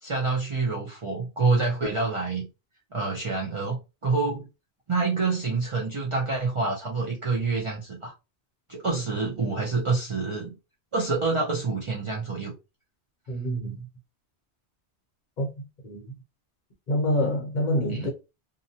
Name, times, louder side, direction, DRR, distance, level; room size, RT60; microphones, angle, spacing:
voice 1, 0.0-2.5 2.9-4.4 4.9-8.1 8.7-10.6 10.9-12.5 17.9-18.1, right 3 dB, 40° right, 0.5 m, -27 dB
voice 2, 13.3-13.8 15.4-16.0 16.9-18.1, equal, 50° left, 0.7 m, -27 dB
2.6 x 2.1 x 2.7 m
omnidirectional pair, 1.2 m